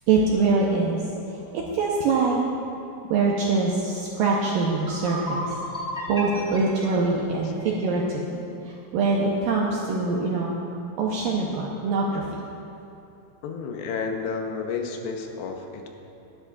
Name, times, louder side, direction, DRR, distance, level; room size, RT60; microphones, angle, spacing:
voice 1, 0.1-2.4 3.1-10.5 11.0-12.4, right 3 dB, 85° right, -3 dB, 2.0 m, -24 dB
sound 1, 4.7-7.8, equal, ahead, 1.1 m, -34 dB
voice 2, 13.4-15.9, left 5 dB, 80° left, 3 dB, 2.9 m, -31 dB
20.0 x 11.0 x 2.5 m, 2.8 s
omnidirectional pair, 5.2 m